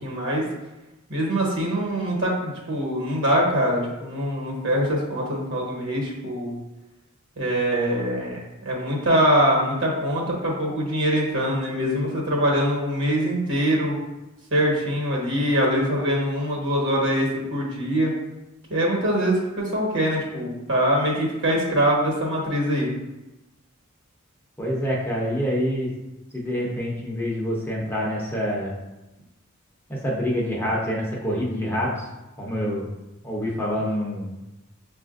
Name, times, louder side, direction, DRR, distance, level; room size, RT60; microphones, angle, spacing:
voice 1, 0.0-0.5 1.1-6.5 7.4-14.0 14.5-18.1 18.7-22.9, equal, 60° right, -2 dB, 1.3 m, -23 dB
voice 2, 24.6-25.9 26.3-28.8 29.9-32.1 32.4-32.9 33.2-34.4, equal, 10° left, -4 dB, 0.7 m, -26 dB
6.7 x 2.4 x 2.5 m, 1.0 s
head